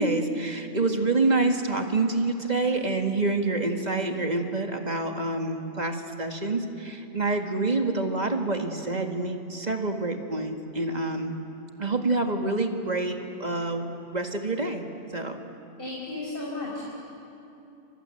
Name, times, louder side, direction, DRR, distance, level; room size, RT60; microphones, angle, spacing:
voice 1, 0.0-11.3 11.8-14.8 15.1-15.4, right 2 dB, 40° right, 4 dB, 2.0 m, -27 dB
voice 2, 15.8-16.9, left 2 dB, 55° left, -4 dB, 4.9 m, -34 dB
29.5 x 25.5 x 7.9 m, 2.8 s
omnidirectional pair, 1.1 m